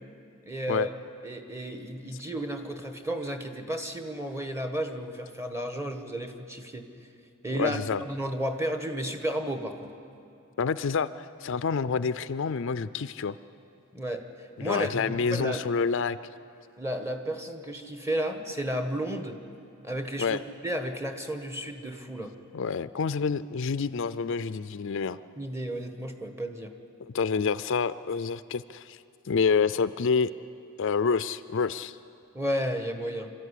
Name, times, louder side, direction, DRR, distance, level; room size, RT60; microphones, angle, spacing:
voice 1, 0.4-0.9 1.2-6.9 7.4-9.9 13.9-15.6 16.8-19.4 19.8-20.4 20.6-22.3 25.4-26.7 32.3-33.3, right 1 dB, 10° right, 6 dB, 1.3 m, -33 dB
voice 2, 7.5-8.0 10.6-13.4 14.6-16.2 20.2-20.4 22.5-25.2 27.0-30.3 30.8-32.0, left 5 dB, 60° left, 14 dB, 0.4 m, -28 dB
25.5 x 13.5 x 10.0 m, 2.6 s
head